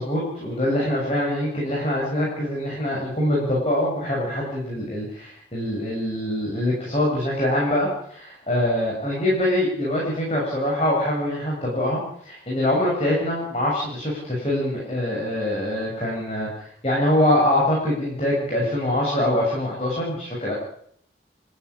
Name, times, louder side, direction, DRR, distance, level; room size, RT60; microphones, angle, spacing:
voice 1, 0.0-20.5, left 1 dB, 35° left, -4 dB, 7.5 m, -24 dB
29.5 x 13.0 x 9.8 m, 0.68 s
head